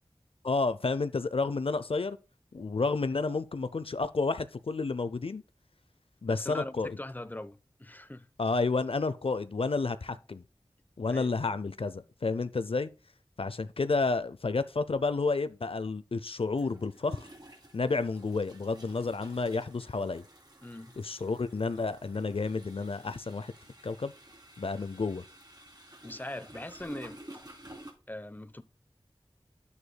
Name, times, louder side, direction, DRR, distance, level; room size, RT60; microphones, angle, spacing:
voice 1, 0.4-2.2 2.5-5.4 6.2-7.0 8.4-10.4 11.0-12.9 13.4-17.3 17.7-20.2 21.0-23.5 23.8-24.1 24.6-25.2, left 3 dB, 70° left, 0.5 m, -30 dB
voice 2, 6.3-8.3 11.1-11.3 20.6-20.9 26.0-27.2 28.1-28.6, left 1 dB, 20° left, 0.8 m, -41 dB
sound 1, 14.9-15.0 16.4-27.9, right 1 dB, 45° right, 3.3 m, -52 dB
9.6 x 8.1 x 2.2 m
wide cardioid pair, 40°, 10 cm